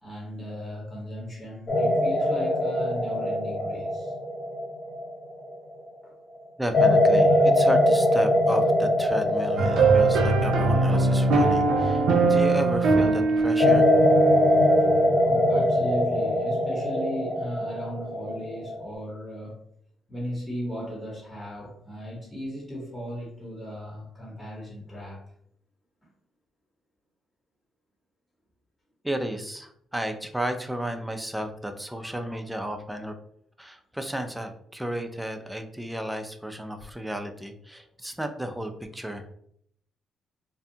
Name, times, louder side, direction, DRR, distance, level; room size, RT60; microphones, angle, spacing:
voice 1, 0.0-4.1 6.0-6.1 15.2-19.6 20.1-25.2, equal, 15° left, -4 dB, 0.9 m, -36 dB
sound 1, 1.7-5.9 6.7-12.7 13.6-18.9, left 1 dB, 40° left, 1.1 m, -23 dB
voice 2, 6.6-13.9 29.0-33.1 33.6-39.3, right 1 dB, 5° right, 6 dB, 0.4 m, -33 dB
sound 2, 9.6-15.2, right 3 dB, 80° right, 0.4 m, -22 dB
2.6 x 2.2 x 2.7 m, 0.67 s
cardioid pair, 90°, 0 cm